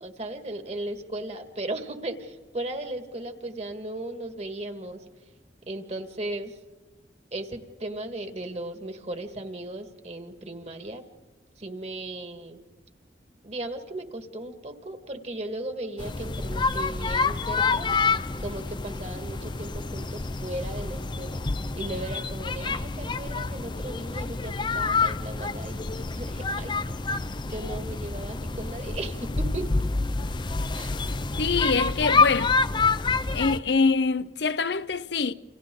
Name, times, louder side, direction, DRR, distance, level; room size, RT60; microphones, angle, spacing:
voice 1, 0.0-5.0 5.7-6.5 7.3-11.0 11.6-12.6 13.4-17.9 18.4-21.4 21.8-26.8 27.1-29.7 30.7-30.9, right 1 dB, 40° right, 1.9 m, -36 dB
sound 1, 16.0-33.6, left 4 dB, 25° left, 0.6 m, -27 dB
voice 2, 31.4-32.5 33.3-35.3, left 4 dB, 75° left, 0.7 m, -24 dB
29.5 x 27.5 x 3.9 m
head